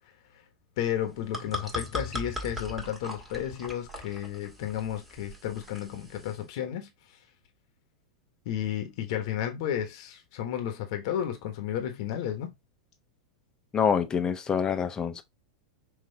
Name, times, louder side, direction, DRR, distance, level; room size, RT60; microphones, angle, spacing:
voice 1, 0.8-7.2 8.4-12.5, left 10 dB, 60° left, 1.3 m, -33 dB
sound 1, 1.0-6.4, left 1 dB, 5° right, 1.8 m, -39 dB
voice 2, 13.7-15.2, left 7 dB, 25° left, 0.9 m, -26 dB
5.9 x 2.8 x 2.8 m
hypercardioid pair, 100°, 3 cm